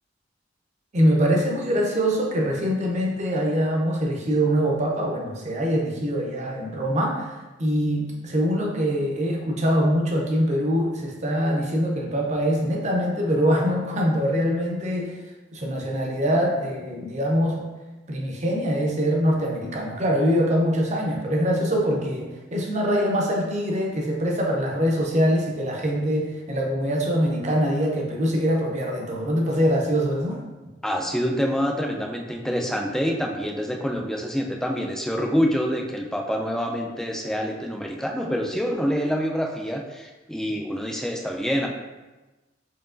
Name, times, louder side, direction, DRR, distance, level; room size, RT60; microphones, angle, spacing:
voice 1, 0.9-15.1 15.5-17.6 18.1-30.4, equal, 40° right, -1 dB, 0.6 m, -23 dB
voice 2, 30.8-41.7, equal, 5° left, 1 dB, 0.3 m, -26 dB
4.5 x 2.9 x 2.5 m, 1.1 s
head